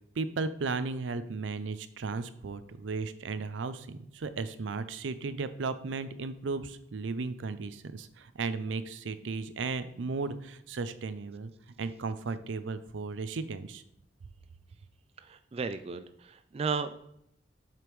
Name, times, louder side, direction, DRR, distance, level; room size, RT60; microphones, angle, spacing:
voice 1, 0.2-11.5 11.8-13.8, right 4 dB, 90° right, 12 dB, 0.5 m, -35 dB
voice 2, 15.2-17.0, right 5 dB, 35° right, 10 dB, 0.3 m, -34 dB
7.6 x 5.1 x 3.1 m, 0.75 s
head